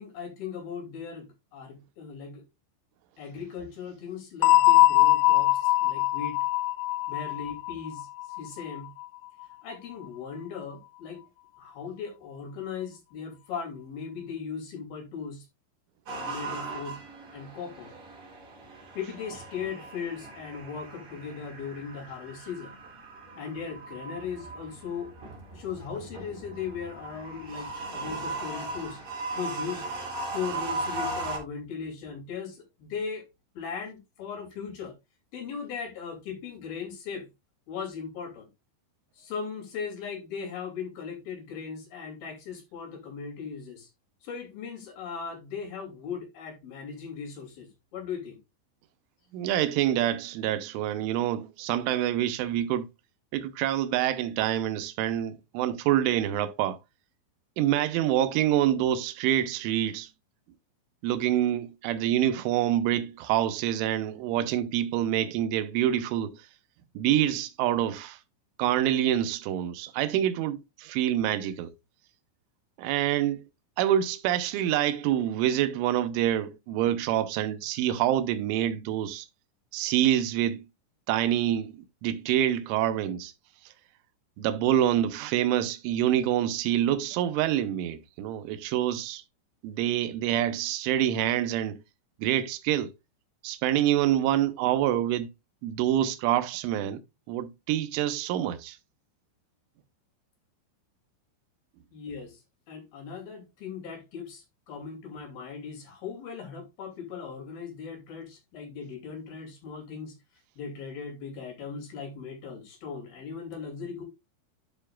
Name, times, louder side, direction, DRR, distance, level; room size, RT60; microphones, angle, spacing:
voice 1, 0.0-2.4 3.2-6.4 7.1-8.9 9.6-11.2 11.6-15.5 16.3-17.0 17.3-17.9 18.9-22.7 23.3-25.1 25.5-29.0 29.3-29.9 30.3-33.3 33.5-35.0 35.3-37.3 37.7-38.5 39.2-43.9 44.2-48.4 101.9-102.4 102.7-110.2 110.6-114.0, left 6 dB, 55° left, 4.3 m, -38 dB
sound 1, 4.4-9.1, left 17 dB, 85° left, 3.2 m, -22 dB
sound 2, 16.1-31.4, right 2 dB, 40° right, 4.3 m, -38 dB
voice 2, 49.3-52.9 53.3-56.8 57.6-60.1 61.0-66.4 67.0-68.2 68.6-71.7 72.8-73.4 73.8-79.3 79.7-80.6 81.1-83.3 84.4-89.2 89.6-91.8 92.2-92.9 93.4-95.3 95.6-97.0 97.3-98.8, right 11 dB, 90° right, 3.2 m, -26 dB
12.5 x 5.5 x 2.4 m
omnidirectional pair, 5.5 m